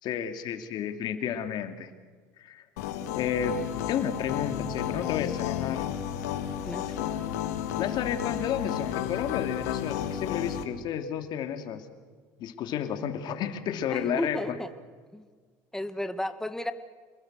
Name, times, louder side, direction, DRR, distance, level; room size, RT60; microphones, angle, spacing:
voice 1, 0.0-1.9 2.4-2.6 3.1-5.9 7.8-11.8 12.4-14.6, left 8 dB, 60° left, 7 dB, 2.8 m, -31 dB
sound 1, 2.8-10.6, left 10 dB, 85° left, 2.1 m, -32 dB
voice 2, 13.9-14.7 15.1-15.3 15.7-16.7, left 1 dB, 5° left, 10 dB, 1.8 m, -33 dB
28.0 x 21.0 x 6.6 m, 1.6 s
supercardioid pair, 85°, 8 cm